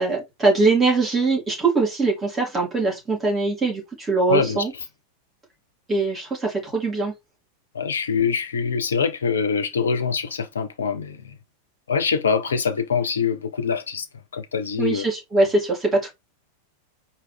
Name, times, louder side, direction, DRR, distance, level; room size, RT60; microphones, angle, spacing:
voice 1, 0.0-4.7 5.9-7.1 14.8-16.1, right 3 dB, 15° right, 2.5 m, -22 dB
voice 2, 4.3-4.6 7.7-11.4 11.9-14.1 14.3-15.1, left 6 dB, 70° left, 0.7 m, -24 dB
4.6 x 2.8 x 3.3 m
figure-of-eight pair, 90°, 0 cm